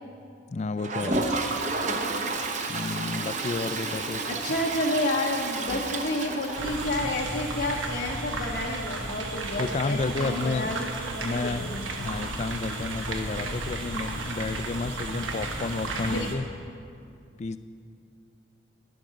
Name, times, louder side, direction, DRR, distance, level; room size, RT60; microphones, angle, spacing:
voice 1, 0.5-1.3 2.7-4.2 9.6-10.7 11.2-11.7 12.0-16.5 17.4-17.6, left 3 dB, 35° left, 12 dB, 0.3 m, -31 dB
Toilet flush, 0.8-7.5 7.8-7.9 8.1-8.2 8.5-8.6 11.1-11.2 12.5-12.6, right 3 dB, 40° right, 0.7 m, -31 dB
voice 2, 1.7-2.3 4.2-11.9 16.0-16.3, left 1 dB, 60° left, -2 dB, 0.8 m, -30 dB
sound 1, 6.6-16.3, right 2 dB, 85° right, 1.2 m, -33 dB
11.0 x 7.9 x 6.3 m, 2.3 s
head